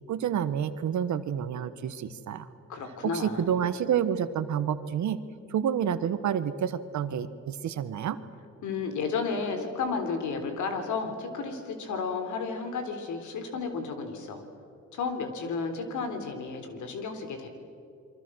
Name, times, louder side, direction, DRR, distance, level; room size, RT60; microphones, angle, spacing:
voice 1, 0.1-2.5 3.0-5.2 5.5-8.2, right 8 dB, 70° right, 12 dB, 1.4 m, -29 dB
voice 2, 2.7-3.6 8.6-14.4 14.9-17.5, left 4 dB, 75° left, 6 dB, 3.8 m, -32 dB
29.0 x 23.5 x 6.4 m, 2.6 s
cardioid pair, 90°, 30 cm